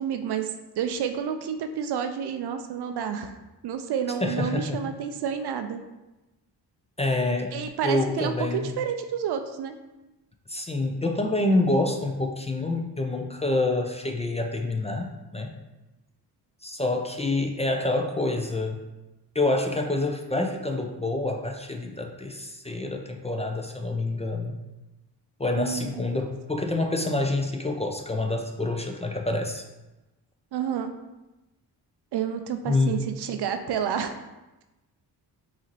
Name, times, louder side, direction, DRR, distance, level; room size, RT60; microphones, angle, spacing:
voice 1, 0.0-3.3 3.6-5.8 7.5-9.7 25.6-26.0 30.5-30.9 32.1-34.2, right 8 dB, 65° right, 7 dB, 0.5 m, -30 dB
voice 2, 4.2-4.8 7.0-7.5 7.8-8.7 10.5-15.6 16.6-18.8 19.3-24.6 25.4-29.6 32.7-33.0, left 2 dB, 15° left, 3 dB, 0.4 m, -27 dB
4.8 x 2.8 x 3.0 m, 1.0 s
cardioid pair, 60°, 42 cm